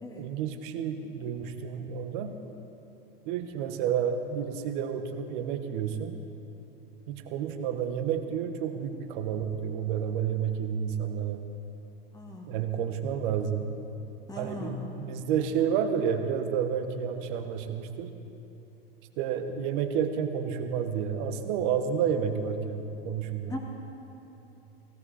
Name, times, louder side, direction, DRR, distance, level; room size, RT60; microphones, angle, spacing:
voice 1, 0.2-2.3 3.2-6.2 7.1-11.4 12.5-13.7 14.4-18.1 19.2-23.5, right 8 dB, 60° right, 7 dB, 1.4 m, -30 dB
voice 2, 12.1-12.5 14.3-14.7 23.5-23.6, left 1 dB, 15° left, 0 dB, 2.0 m, -39 dB
16.5 x 16.5 x 4.2 m, 2.9 s
hypercardioid pair, 105°, 29 cm